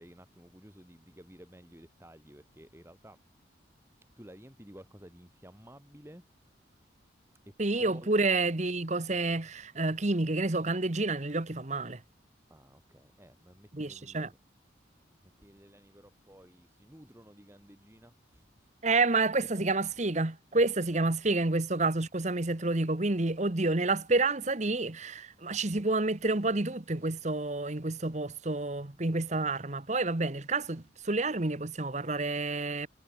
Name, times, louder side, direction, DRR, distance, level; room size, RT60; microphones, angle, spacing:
voice 1, 0.0-3.2 4.2-6.2 6.6-7.1 7.5-8.0 12.5-14.4 15.1-18.7 19.4-19.8 20.5-20.6 20.9-21.0 28.8-29.1, equal, 15° right, 4.4 m, -54 dB
voice 2, 7.6-12.0 13.7-14.3 18.8-32.9, right 2 dB, 40° right, 1.2 m, -29 dB
head